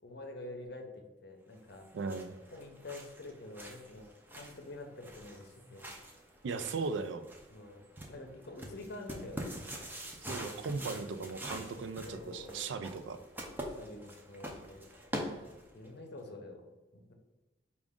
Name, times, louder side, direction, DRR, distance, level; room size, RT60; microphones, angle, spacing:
voice 1, 0.0-1.9 2.5-5.9 7.5-9.6 10.8-11.0 12.0-12.7 13.6-14.8 15.7-16.7 16.9-17.1, left 2 dB, 55° left, 3 dB, 0.7 m, -47 dB
sound 1, 1.7-15.9, equal, 10° right, 0.5 m, -45 dB
voice 2, 1.9-2.3 6.4-7.2 10.3-13.2, right 4 dB, 70° right, 10 dB, 0.3 m, -37 dB
4.9 x 2.4 x 3.5 m, 1.1 s
head